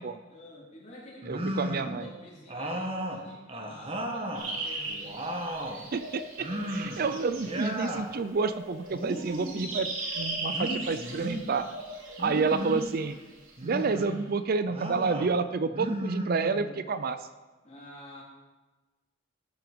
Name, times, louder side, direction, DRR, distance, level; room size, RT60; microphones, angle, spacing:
voice 1, 0.3-5.2 17.6-18.2, left 1 dB, 35° left, -4 dB, 3.6 m, -49 dB
sound 1, 1.2-2.0 2.5-4.5 4.9-5.8 6.4-7.1 7.3-8.1 8.9-9.7 10.5-11.4 12.2-12.9 13.6-14.2 14.7-15.3 15.7-16.8, equal, 30° right, 1.4 m, -34 dB
voice 2, 1.3-2.1 5.9-9.9 10.1-11.7 12.2-13.2 13.6-17.3, right 4 dB, 45° right, 12 dB, 0.5 m, -29 dB
sound 2, 4.4-8.0 8.3-14.1, right 2 dB, 75° right, 2.7 m, -38 dB
12.5 x 9.0 x 5.2 m, 1.2 s
head